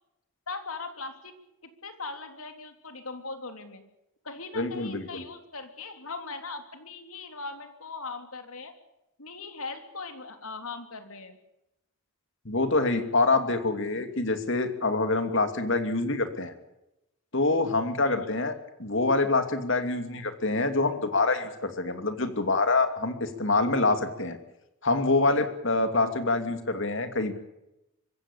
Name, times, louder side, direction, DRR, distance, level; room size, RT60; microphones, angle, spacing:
voice 1, 0.5-1.3 1.6-3.8 4.2-8.7 9.2-11.4 18.0-18.4 25.9-26.2, left 3 dB, 75° left, 7 dB, 3.4 m, -40 dB
voice 2, 4.6-5.2 12.4-16.5 17.3-18.5 18.8-24.4 24.8-27.3, left 3 dB, 60° left, 8 dB, 2.8 m, -26 dB
24.5 x 16.0 x 8.7 m, 0.89 s
head